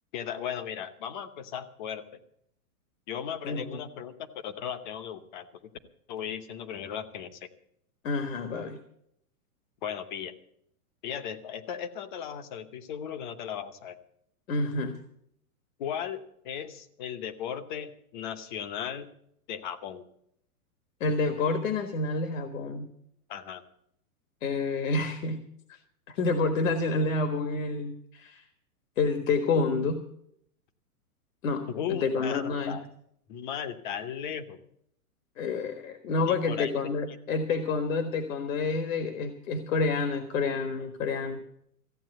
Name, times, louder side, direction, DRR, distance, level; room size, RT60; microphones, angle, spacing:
voice 1, 0.1-2.2 3.1-5.5 6.1-7.5 9.8-10.3 11.0-14.0 15.8-19.1 19.5-20.0 23.3-23.6 31.7-32.8 33.3-34.6 36.3-36.7 37.1-37.2, left 8 dB, 35° left, 12 dB, 0.9 m, -36 dB
voice 2, 3.4-3.8 8.0-8.8 14.5-14.9 21.0-22.9 24.4-25.4 26.1-28.4 29.0-30.0 31.4-32.8 35.4-41.4, left 3 dB, 60° left, 7 dB, 1.5 m, -28 dB
15.0 x 8.8 x 7.7 m, 0.72 s
supercardioid pair, 170°, 44 cm